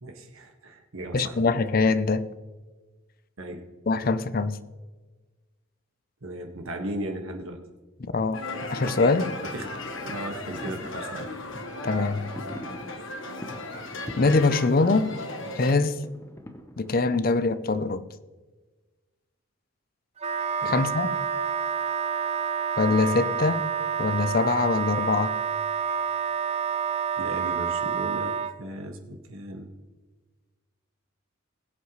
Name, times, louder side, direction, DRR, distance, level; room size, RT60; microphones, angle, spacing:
voice 1, 0.0-1.4 3.4-3.6 6.2-7.6 9.5-9.7 10.0-11.3 20.6-20.8 27.2-29.7, right 1 dB, 80° right, 1.7 m, -36 dB
voice 2, 1.1-2.3 3.9-4.6 8.1-8.4 8.7-9.4 11.8-12.3 14.2-15.2 15.6-16.1 16.8-18.0 20.7-21.1 22.8-23.7 24.0-25.4, left 3 dB, 45° left, 0.5 m, -23 dB
sound 1, 8.3-15.7, left 2 dB, 65° left, 1.3 m, -36 dB
sound 2, 8.7-17.2, equal, 15° left, 0.8 m, -44 dB
Wind instrument woodwind instrument, 20.2-28.5, right 7 dB, 30° right, 0.4 m, -28 dB
21.5 x 8.2 x 3.1 m
head